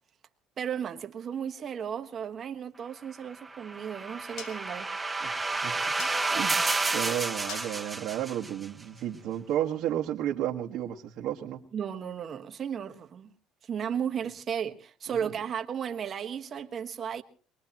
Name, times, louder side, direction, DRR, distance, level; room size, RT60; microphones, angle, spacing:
voice 1, 0.6-4.9 11.7-13.3 13.6-17.2, right 8 dB, 35° right, 1.4 m, -34 dB
sound 1, 3.2-9.6, left 7 dB, 70° left, 2.4 m, -50 dB
sound 2, 3.4-8.7, right 3 dB, 15° right, 0.7 m, -30 dB
voice 2, 5.2-6.6 6.9-11.6 15.1-15.3, right 11 dB, 65° right, 1.4 m, -33 dB
23.5 x 21.0 x 3.0 m
cardioid pair, 130°, 0 cm